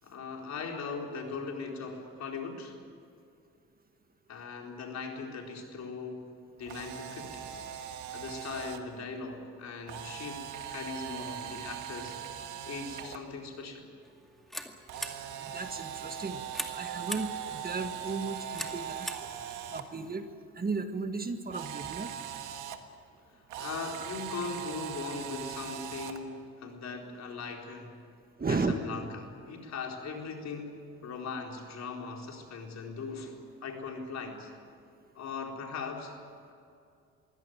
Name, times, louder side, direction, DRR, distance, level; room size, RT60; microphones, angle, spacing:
voice 1, 0.0-2.8 4.3-6.3 6.6-7.6 8.1-10.4 10.7-12.2 12.6-13.9 23.3-27.9 28.5-30.8 31.0-34.5 35.2-36.1, left 4 dB, 60° left, 1 dB, 4.3 m, -39 dB
Camera, 6.6-8.8 9.9-13.2 14.9-19.8 21.5-22.8 23.5-26.2, right 9 dB, 85° right, 1.7 m, -40 dB
sound 1, 14.0-20.2, equal, ahead, 2.2 m, -44 dB
voice 2, 15.4-16.4 16.7-19.1 19.7-20.3 20.6-22.1 28.4-28.7, right 4 dB, 30° right, 7 dB, 1.7 m, -34 dB
23.0 x 16.5 x 9.4 m, 2.4 s
cardioid pair, 90°, 30 cm